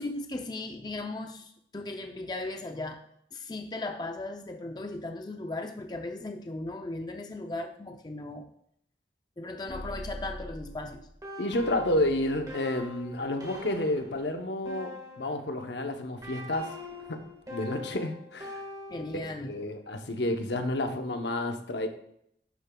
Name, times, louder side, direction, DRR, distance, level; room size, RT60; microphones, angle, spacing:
voice 1, 0.0-3.0 3.3-8.4 9.4-11.1 18.9-19.5, left 2 dB, 25° left, 5 dB, 0.5 m, -37 dB
sound 1, 9.7-15.6 16.2-19.4, left 2 dB, 20° right, 1.6 m, -43 dB
voice 2, 11.4-16.7 17.1-17.2 17.5-18.6 19.1-21.9, left 1 dB, 75° left, 6 dB, 0.8 m, -30 dB
11.0 x 6.8 x 2.3 m, 0.71 s
head